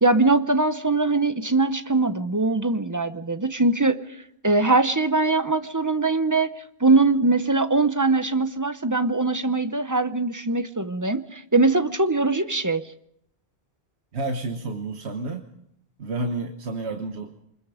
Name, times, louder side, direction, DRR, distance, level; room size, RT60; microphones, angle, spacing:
voice 1, 0.0-4.0 4.4-6.5 6.8-12.8, right 3 dB, 20° right, 11 dB, 0.8 m, -21 dB
voice 2, 14.1-15.5 16.0-17.4, right 2 dB, 80° right, 4 dB, 1.6 m, -30 dB
24.5 x 21.0 x 5.0 m, 0.74 s
omnidirectional pair, 1.1 m